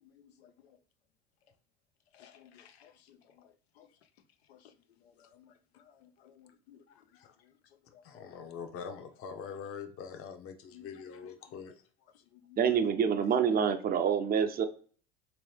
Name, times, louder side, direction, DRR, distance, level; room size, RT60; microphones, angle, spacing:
voice 1, 0.0-0.8 2.1-3.9 4.5-4.7 5.2-6.8 7.2-7.5 7.9-8.0 10.7-11.7 12.3-12.6, left 9 dB, 90° left, 0.5 m, -59 dB
voice 2, 8.0-11.7, left 6 dB, 45° left, 0.8 m, -43 dB
voice 3, 12.6-14.7, right 7 dB, 30° right, 0.5 m, -27 dB
3.3 x 3.0 x 3.2 m
hypercardioid pair, 75°, 30 cm